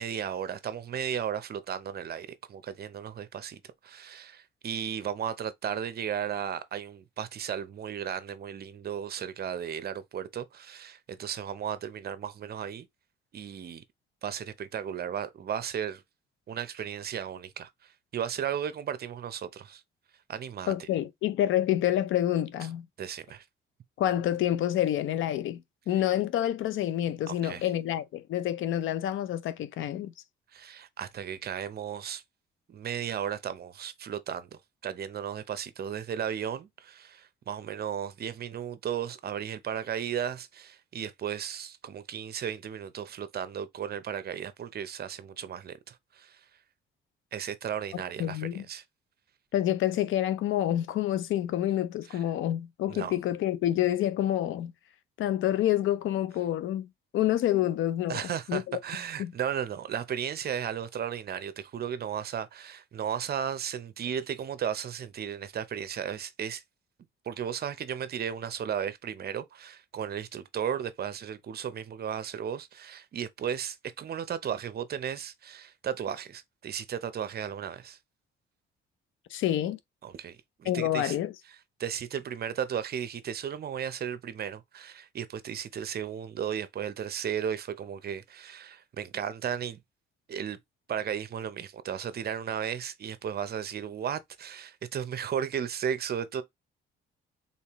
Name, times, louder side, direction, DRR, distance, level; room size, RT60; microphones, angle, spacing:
voice 1, 0.0-12.9 13.3-13.8 14.2-16.0 16.5-17.7 18.1-19.8 20.3-20.7 23.0-23.4 27.3-27.7 30.5-32.2 32.7-46.4 47.3-48.8 52.1-52.2 52.9-53.2 58.1-66.6 67.3-78.0 80.0-81.1 81.8-89.8 90.3-90.6 90.9-96.4, right 8 dB, 50° right, 0.7 m, -35 dB
voice 2, 20.7-22.8 24.0-30.1 48.2-48.6 49.5-54.7 55.2-56.9 57.1-58.8 59.2-59.3 79.3-79.8 80.6-81.3, left 12 dB, 80° left, 0.7 m, -28 dB
4.2 x 3.7 x 3.0 m
cardioid pair, 90°, 20 cm